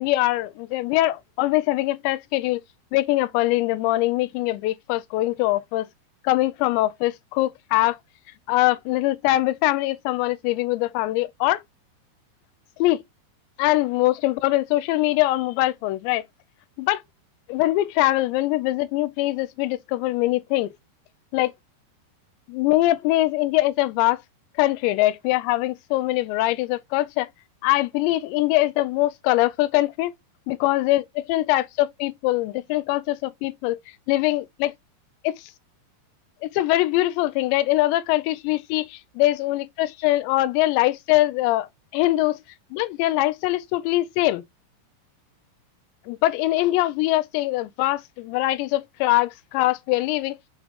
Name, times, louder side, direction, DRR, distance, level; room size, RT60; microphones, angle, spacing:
voice 1, 0.0-2.6 2.9-5.9 6.2-8.0 8.5-11.6 12.8-13.0 13.6-16.3 16.8-17.0 17.5-20.7 21.3-21.5 22.5-24.2 24.6-27.3 27.6-30.1 30.5-33.8 34.1-34.7 35.2-35.5 36.4-41.7 41.9-42.4 42.7-44.4 46.1-50.4, left 17 dB, 85° left, 2.8 m, -22 dB
7.5 x 3.7 x 3.5 m
omnidirectional pair, 5.0 m